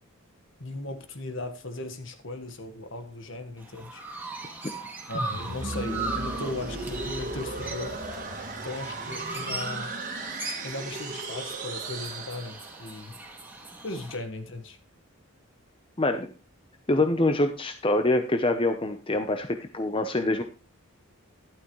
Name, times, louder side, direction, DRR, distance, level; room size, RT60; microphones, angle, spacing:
voice 1, 0.6-4.0 5.1-7.9 8.6-9.9 10.6-13.2 13.8-14.8, left 2 dB, 60° left, 1.5 m, -37 dB
Chirp tweet, 3.6-14.2, right 3 dB, 10° right, 1.9 m, -39 dB
sound 1, 5.2-13.0, right 2 dB, 40° right, 1.9 m, -36 dB
voice 2, 16.0-16.3 16.9-20.4, left 2 dB, 25° left, 0.7 m, -25 dB
12.5 x 11.5 x 3.1 m
head